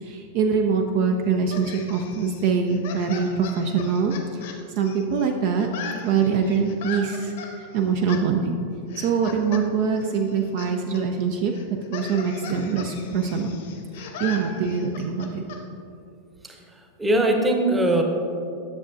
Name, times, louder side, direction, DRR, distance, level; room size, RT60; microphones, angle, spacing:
voice 1, 0.0-4.4 4.8-5.7 6.0-8.6 9.0-11.5 11.9-13.5 14.2-15.4, right 5 dB, 45° right, 3 dB, 0.5 m, -24 dB
sound 1, 1.5-5.3 5.5-7.5 8.1-8.2 8.9-9.6 9.9-10.7 10.9-11.0 11.5-15.6, left 5 dB, 55° left, 0.9 m, -38 dB
voice 2, 16.4-18.0, right 1 dB, 10° right, 3 dB, 0.9 m, -22 dB
10.5 x 6.8 x 2.6 m, 2.6 s
figure-of-eight pair, 90°, 0 cm